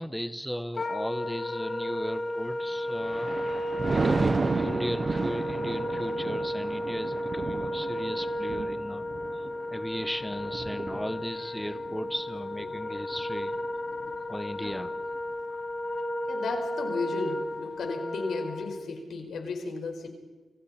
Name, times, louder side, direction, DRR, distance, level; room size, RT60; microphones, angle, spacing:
voice 1, 0.0-3.6 3.9-9.1 9.3-13.6 14.3-14.9, equal, ahead, 9 dB, 1.1 m, -37 dB
Wind instrument woodwind instrument, 0.7-18.9, left 1 dB, 50° left, 2.7 m, -33 dB
Thunder, 2.7-14.2 14.7-15.0, right 4 dB, 40° right, 0.9 m, -33 dB
voice 2, 16.3-20.1, left 3 dB, 80° left, 4 dB, 4.9 m, -34 dB
30.0 x 26.5 x 4.4 m, 1.3 s
cardioid pair, 90°, 0 cm